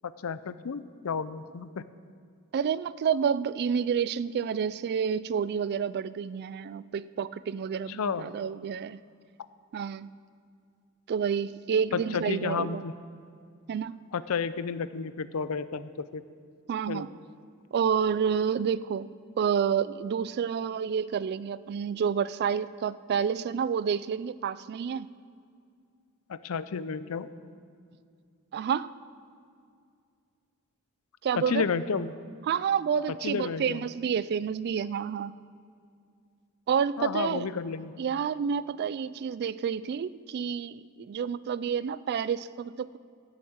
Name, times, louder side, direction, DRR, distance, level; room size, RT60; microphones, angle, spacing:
voice 1, 0.2-1.8 7.9-8.3 11.9-12.9 14.1-16.2 16.9-17.1 26.3-27.3 31.4-32.1 33.2-33.8 37.0-37.9, left 5 dB, 70° left, 14 dB, 0.5 m, -31 dB
voice 2, 2.5-9.0 9.7-10.1 11.1-12.8 13.7-14.0 16.7-17.1 17.7-19.1 19.4-25.1 28.5-28.9 31.2-31.6 32.5-35.3 36.7-37.5 38.0-43.0, right 7 dB, 50° right, 17 dB, 0.3 m, -29 dB
11.5 x 7.1 x 8.0 m, 2.3 s
head